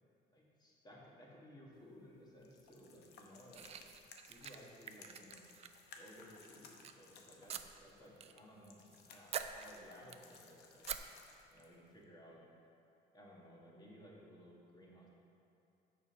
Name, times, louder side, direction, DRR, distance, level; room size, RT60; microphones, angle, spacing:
voice 1, 0.3-3.7 4.3-5.5 6.0-11.1 11.5-12.4 13.1-15.1, equal, 25° left, -4 dB, 1.7 m, -58 dB
sound 1, 1.7-12.0, left 5 dB, 75° left, 0.8 m, -61 dB
sound 2, 3.5-6.0 6.4-6.9 7.5-8.4 8.7-9.0 9.3-10.4 10.8-11.0, right 8 dB, 40° right, 0.4 m, -46 dB
7.0 x 4.9 x 5.6 m, 2.7 s
cardioid pair, 110°, 17 cm